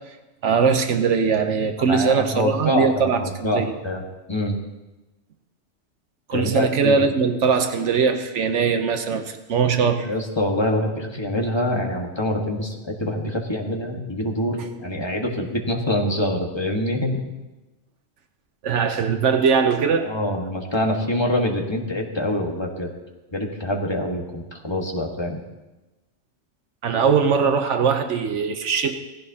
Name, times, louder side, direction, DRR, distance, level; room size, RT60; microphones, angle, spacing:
voice 1, 0.4-3.7 6.3-10.1 18.6-20.1 26.8-28.9, right 6 dB, 85° right, 7 dB, 1.2 m, -21 dB
voice 2, 1.8-4.0 4.3-4.5 6.3-7.1 10.0-17.2 20.0-22.9 23.3-25.4, left 1 dB, 25° left, 0 dB, 1.5 m, -25 dB
17.0 x 15.5 x 2.8 m, 1.1 s
omnidirectional pair, 1.2 m